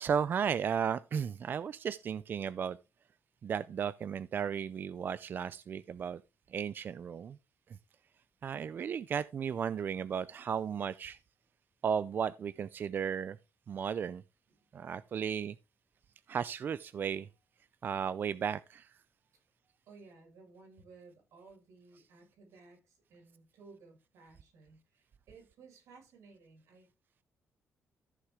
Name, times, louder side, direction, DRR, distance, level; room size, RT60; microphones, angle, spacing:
voice 1, 0.0-2.8 3.4-6.2 6.5-7.4 8.4-11.2 11.8-13.4 13.7-14.2 14.7-15.6 16.3-17.3 17.8-18.9, right 7 dB, 45° right, 0.4 m, -34 dB
voice 2, 19.9-26.9, right 4 dB, 85° right, 6.1 m, -57 dB
14.0 x 6.6 x 3.7 m
cardioid pair, 145°, 5 cm